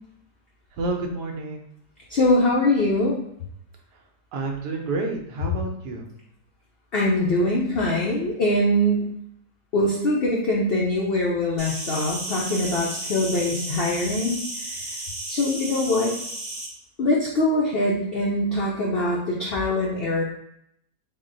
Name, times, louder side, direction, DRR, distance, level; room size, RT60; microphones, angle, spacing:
voice 1, 0.7-1.7 3.9-4.0 4.3-6.1, right 2 dB, 85° right, 2 dB, 1.2 m, -29 dB
voice 2, 2.1-3.2 6.9-9.1 9.7-14.8 15.3-16.1 17.0-20.2, left 1 dB, 90° left, -2 dB, 0.5 m, -23 dB
Insect, 11.6-16.7, right 1 dB, 45° right, 0.7 m, -33 dB
3.8 x 2.2 x 3.8 m, 0.72 s
omnidirectional pair, 1.7 m